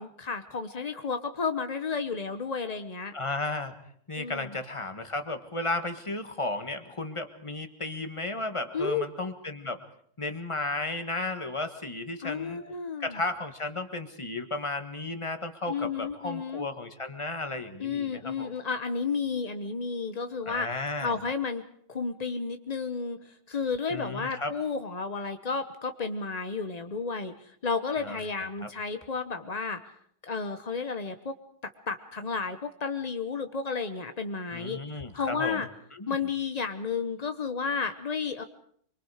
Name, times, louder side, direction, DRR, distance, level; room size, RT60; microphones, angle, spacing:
voice 1, 0.0-3.1 4.2-4.5 8.7-9.0 12.2-13.2 15.7-16.7 17.8-20.7 21.0-21.6 21.9-29.8 30.2-31.4 31.9-34.8 35.1-35.7 36.1-38.4, left 5 dB, 45° left, 8 dB, 0.5 m, -32 dB
voice 2, 3.1-3.8 4.1-9.8 10.2-12.6 13.0-18.5 20.4-21.2 23.9-24.5 27.9-28.7 34.5-36.2, left 2 dB, 15° left, 7 dB, 1.4 m, -34 dB
25.5 x 23.5 x 5.0 m, 0.64 s
omnidirectional pair, 2.2 m